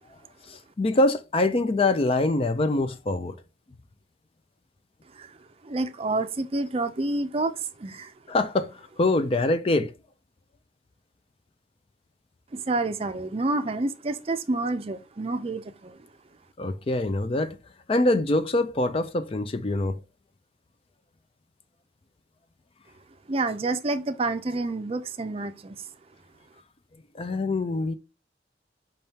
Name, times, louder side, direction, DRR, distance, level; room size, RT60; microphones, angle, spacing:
voice 1, 0.5-3.4 8.3-9.9 16.6-17.6 17.9-20.0 27.1-27.9, left 2 dB, 35° left, 0.4 m, -24 dB
voice 2, 5.7-7.5 7.8-7.9 12.7-15.6 23.3-25.7, right 2 dB, 35° right, 0.5 m, -28 dB
5.3 x 3.5 x 2.8 m
head